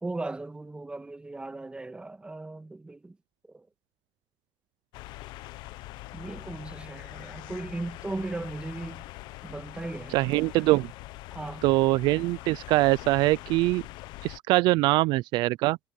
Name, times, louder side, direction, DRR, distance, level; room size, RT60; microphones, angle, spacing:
voice 1, 0.0-3.2 3.4-3.7 6.1-9.0 9.4-10.2 11.3-11.6, right 2 dB, 15° right, 1.8 m, -37 dB
sound 1, 4.9-14.4, left 18 dB, 75° left, 1.0 m, -43 dB
voice 2, 10.1-10.9 11.6-13.8 14.2-15.8, right 20 dB, 75° right, 0.4 m, -23 dB
cardioid pair, 105°, 8 cm